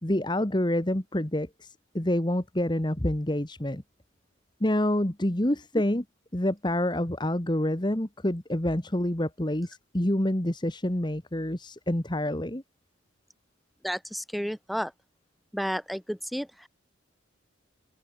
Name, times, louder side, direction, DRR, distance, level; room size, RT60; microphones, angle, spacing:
voice 1, 0.0-3.8 4.6-6.0 6.3-12.6, left 1 dB, 20° left, 1.5 m, -27 dB
voice 2, 13.8-14.9 15.5-16.7, equal, ahead, 2.0 m, -32 dB
open air
head